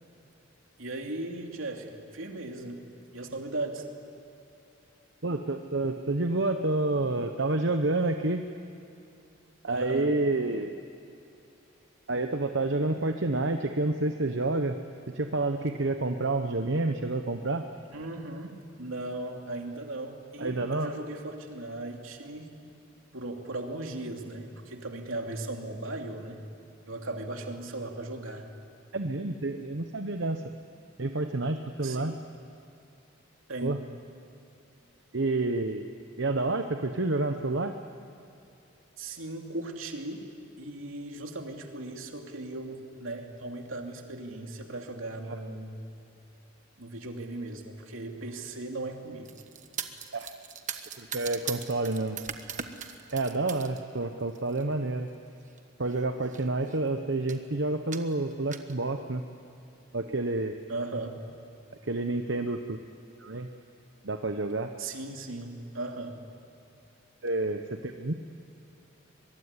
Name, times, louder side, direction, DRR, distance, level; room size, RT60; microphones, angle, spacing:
voice 1, 0.8-2.9 3.1-3.9 9.7-10.1 17.9-22.6 23.1-26.4 26.9-28.5 31.8-32.1 33.5-33.8 39.0-40.3 40.6-45.8 46.8-49.4 60.7-61.1 64.8-66.2, right 2 dB, 80° right, 3 dB, 2.8 m, -37 dB
voice 2, 5.2-8.4 9.6-10.7 12.1-14.8 15.1-17.7 20.4-20.9 28.9-30.4 31.0-32.1 33.6-33.8 35.1-37.8 50.1-50.3 51.0-52.2 53.1-55.1 55.8-59.2 59.9-60.6 61.8-62.8 63.2-63.5 64.0-64.7 67.2-68.1, right 2 dB, 60° right, 6 dB, 1.0 m, -29 dB
sound 1, 49.2-53.8 54.2-54.6 55.5-55.6 55.9-56.0 56.2-56.8 57.3-57.5 57.9-58.7, right 8 dB, 35° right, 1.3 m, -39 dB
23.5 x 23.0 x 9.8 m, 2.7 s
head